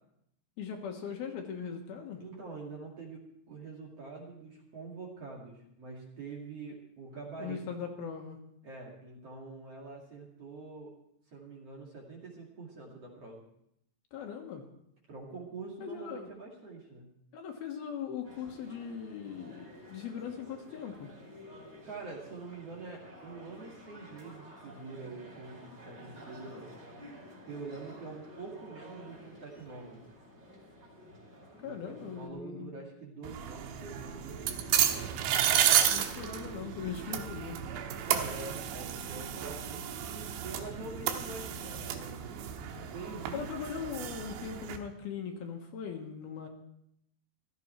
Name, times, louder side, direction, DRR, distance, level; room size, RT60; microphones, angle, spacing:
voice 1, 0.6-2.2 7.4-8.4 14.1-14.6 15.8-16.3 17.3-21.1 31.6-32.8 35.9-37.6 43.3-46.5, left 7 dB, 70° left, 3 dB, 2.9 m, -40 dB
voice 2, 2.2-7.6 8.6-10.9 11.3-13.4 15.1-17.1 21.8-26.7 27.4-30.0 31.6-35.1 38.0-42.5 42.9-43.5, right 3 dB, 40° right, -2 dB, 2.7 m, -45 dB
sound 1, 18.2-32.3, equal, 20° right, 4.4 m, -52 dB
sound 2, 33.2-44.8, right 10 dB, 90° right, 3.3 m, -32 dB
16.0 x 14.0 x 4.5 m, 0.75 s
omnidirectional pair, 5.0 m